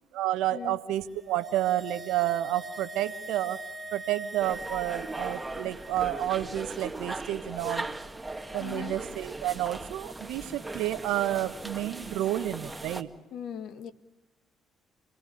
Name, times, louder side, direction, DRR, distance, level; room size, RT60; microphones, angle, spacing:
voice 1, 0.1-3.6 3.9-7.9 8.5-13.1, right 13 dB, 70° right, 11 dB, 1.1 m, -30 dB
sound 1, 1.0-6.5 6.8-6.9, right 1 dB, 35° right, 2.4 m, -43 dB
sound 2, 4.4-13.0, right 2 dB, 15° right, 1.9 m, -39 dB
voice 2, 8.6-9.0 13.3-13.9, left 9 dB, 60° left, 10 dB, 1.6 m, -39 dB
29.0 x 19.5 x 8.6 m, 0.98 s
figure-of-eight pair, 45°, 0 cm